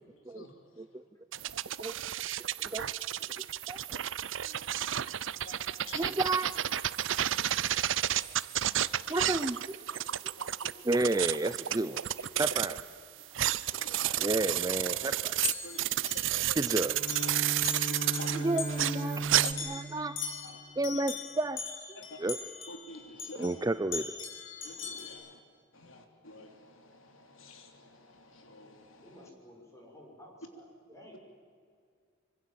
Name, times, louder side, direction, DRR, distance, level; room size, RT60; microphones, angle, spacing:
sound 1, 1.3-12.9 13.2-19.5, right 12 dB, 70° right, 0.7 m, -31 dB
voice 1, 3.7-4.0 6.0-6.5 9.1-10.0 10.8-12.0 12.4-12.8 14.2-15.3 16.5-17.0 18.3-20.2 20.8-21.6 22.2-22.4 23.4-24.1, right 2 dB, 20° right, 13 dB, 0.5 m, -31 dB
voice 2, 4.9-5.5 5.8-6.2 10.1-10.5 13.4-13.9 15.6-16.6 17.2-18.5 20.4-20.6 20.9-21.0 21.9-22.2 22.7-23.6 24.6-25.4 25.7-29.2, left 2 dB, 90° left, 5 dB, 3.3 m, -50 dB
voice 3, 6.6-7.2 8.6-8.9 10.2-10.4 12.2-12.7 13.7-14.3 14.8-15.3 29.0-31.2, equal, 15° left, -1 dB, 6.4 m, -54 dB
sound 2, 13.5-13.6 14.8-14.9 15.4-16.7 17.1-17.4 17.7-18.8 19.4-23.6 23.9-25.1, left 6 dB, 70° left, 5.3 m, -40 dB
Bowed string instrument, 16.8-20.9, right 1 dB, 45° left, 4.9 m, -37 dB
25.5 x 25.0 x 7.6 m, 2.1 s
head